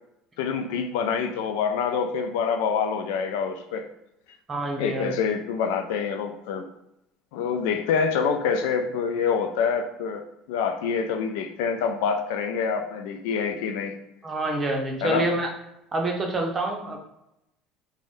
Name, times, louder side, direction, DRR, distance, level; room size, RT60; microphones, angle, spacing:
voice 1, 0.4-3.9 4.8-6.7 7.3-14.0 15.0-15.3, left 6 dB, 85° left, 7 dB, 0.3 m, -26 dB
voice 2, 4.5-5.2 14.2-15.5 15.9-17.0, right 2 dB, 25° right, 1 dB, 0.6 m, -27 dB
2.5 x 2.1 x 3.5 m, 0.85 s
supercardioid pair, 115°, 0 cm